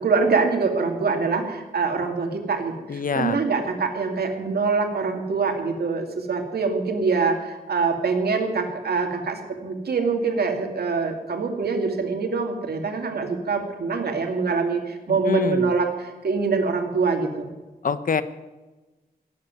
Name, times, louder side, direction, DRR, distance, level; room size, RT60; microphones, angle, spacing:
voice 1, 0.0-17.5, right 4 dB, 80° right, 4 dB, 2.5 m, -24 dB
voice 2, 2.9-3.4 15.1-15.7 17.8-18.2, left 5 dB, 60° left, 13 dB, 1.0 m, -25 dB
17.0 x 7.7 x 9.3 m, 1.2 s
wide cardioid pair, 85°, 16 cm